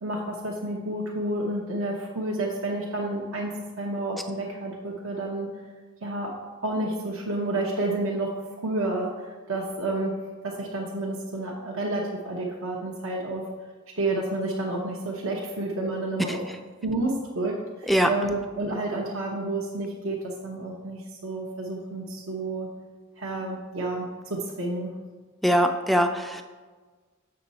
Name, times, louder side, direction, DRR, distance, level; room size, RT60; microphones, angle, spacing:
voice 1, 0.0-5.5 6.0-6.3 6.6-8.3 8.6-10.1 10.4-13.4 14.0-16.4 16.8-22.7 23.2-24.9, right 2 dB, 65° right, -2 dB, 0.9 m, -30 dB
voice 2, 16.3-16.6 17.9-18.1 25.4-26.4, equal, ahead, 6 dB, 0.4 m, -22 dB
6.6 x 6.4 x 4.1 m, 1.4 s
head